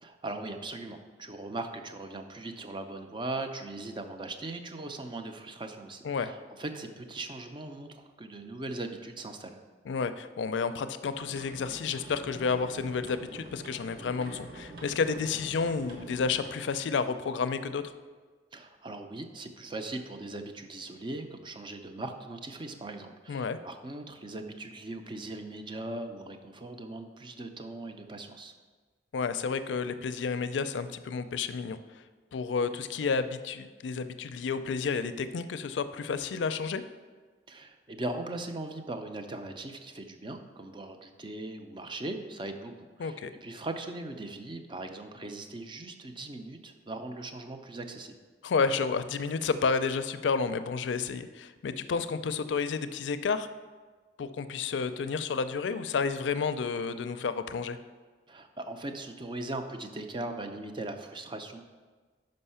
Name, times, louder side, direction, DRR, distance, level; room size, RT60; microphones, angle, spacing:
voice 1, 0.0-9.6 18.5-28.5 37.5-48.2 58.3-61.6, right 2 dB, 25° right, 6 dB, 0.5 m, -39 dB
voice 2, 9.9-17.8 23.3-23.6 29.1-32.0 32.3-36.8 43.0-43.3 48.4-53.5 54.2-57.8, left 5 dB, 85° left, 11 dB, 0.4 m, -31 dB
sound 1, 11.1-16.5, right 1 dB, 60° right, 1.5 m, -46 dB
5.5 x 5.3 x 5.5 m, 1.4 s
head